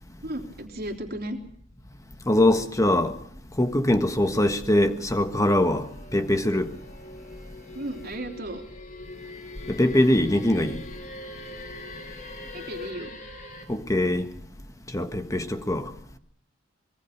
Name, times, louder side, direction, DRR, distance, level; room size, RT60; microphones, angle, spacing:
voice 1, 0.2-1.4 7.7-8.6 12.5-13.2, right 1 dB, 50° right, 3.2 m, -34 dB
voice 2, 2.3-3.2 3.6-6.7 9.7-10.8 13.7-14.3 14.9-15.9, left 1 dB, 15° left, 1.5 m, -22 dB
sound 1, 4.7-13.7, left 2 dB, 40° left, 3.3 m, -43 dB
24.5 x 21.5 x 5.8 m
head